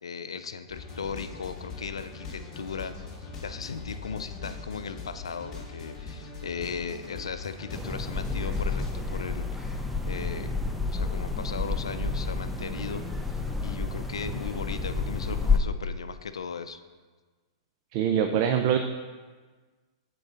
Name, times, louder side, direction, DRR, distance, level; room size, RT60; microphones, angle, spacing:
voice 1, 0.0-3.1 3.4-9.7 10.1-10.5 10.9-16.8, left 6 dB, 90° left, 11 dB, 0.4 m, -37 dB
sound 1, 0.7-8.9, left 4 dB, 20° left, 1.4 m, -41 dB
sound 2, 7.7-15.6, left 3 dB, ahead, 0.5 m, -30 dB
voice 2, 17.9-18.8, right 9 dB, 50° right, 6 dB, 0.4 m, -23 dB
7.6 x 3.8 x 5.0 m, 1.4 s
hypercardioid pair, 120°, 3 cm